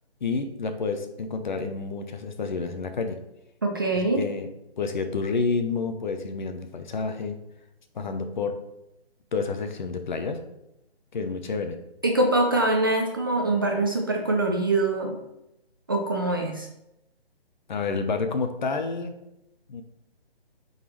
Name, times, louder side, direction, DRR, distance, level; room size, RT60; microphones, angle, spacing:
voice 1, 0.2-3.2 3.9-4.5 4.8-7.4 7.9-8.6 9.3-10.4 11.1-11.8 17.7-19.1 19.7-19.8, left 4 dB, 45° left, 7 dB, 0.8 m, -29 dB
voice 2, 3.6-4.2 12.0-15.2 15.9-16.7, right 2 dB, 20° right, 1 dB, 0.4 m, -24 dB
9.0 x 4.0 x 3.2 m, 0.88 s
figure-of-eight pair, 150°, 32 cm